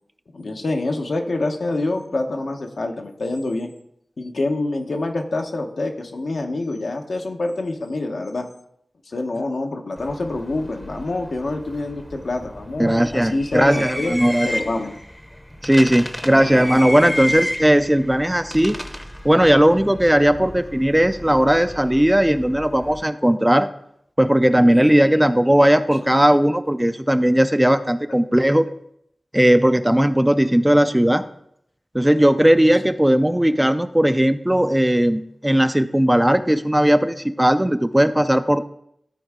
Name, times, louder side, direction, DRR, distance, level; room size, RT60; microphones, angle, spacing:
voice 1, 0.3-3.7 4.2-8.5 9.1-14.1 14.4-15.0 16.3-16.7 17.1-17.2 24.5-25.0 25.2-25.4 26.0-26.1 33.3-33.4, left 2 dB, 75° left, 3 dB, 1.0 m, -26 dB
sound 1, 10.0-23.0, equal, 10° left, 0.8 m, -33 dB
voice 2, 12.8-14.5 15.6-18.8 19.2-23.7 24.2-28.7 29.3-31.2 31.9-38.6, right 1 dB, 10° right, 10 dB, 0.4 m, -17 dB
13.0 x 4.4 x 3.6 m, 0.73 s
wide cardioid pair, 55°, 0 cm